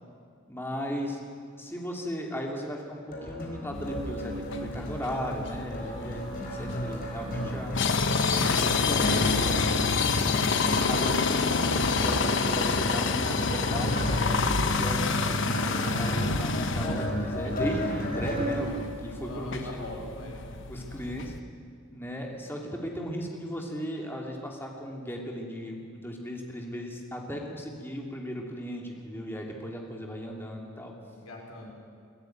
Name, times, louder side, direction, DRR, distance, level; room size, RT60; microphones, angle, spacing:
voice 1, 0.5-1.2 1.6-4.3 4.6-7.8 8.3-9.8 10.9-20.1 20.7-21.3 21.9-30.9, equal, 10° left, 0 dB, 2.8 m, -36 dB
sound 1, 3.1-18.6, equal, 40° left, 4.5 m, -33 dB
sound 2, 3.7-21.4, left 4 dB, 60° left, 1.0 m, -29 dB
voice 2, 6.4-6.8 7.2-7.6 19.2-20.6 31.2-31.7, left 1 dB, 80° left, 0 dB, 5.2 m, -43 dB
23.0 x 14.5 x 9.2 m, 2.3 s
head